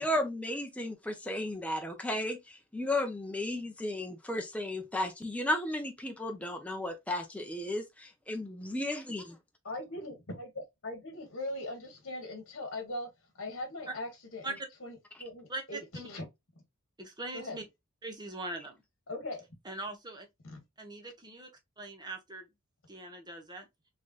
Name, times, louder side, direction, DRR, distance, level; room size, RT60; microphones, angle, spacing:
voice 1, 0.0-9.4, left 1 dB, 5° left, 0.7 m, -34 dB
voice 2, 9.6-13.1 13.3-16.3 17.3-17.6 19.1-19.5 20.4-20.6, left 1 dB, 55° left, 1.3 m, -40 dB
voice 3, 17.0-17.6 18.0-18.8 19.6-20.3 20.8-21.5 21.8-22.5 22.9-23.7, right 2 dB, 20° right, 1.0 m, -41 dB
4.0 x 3.2 x 2.3 m
head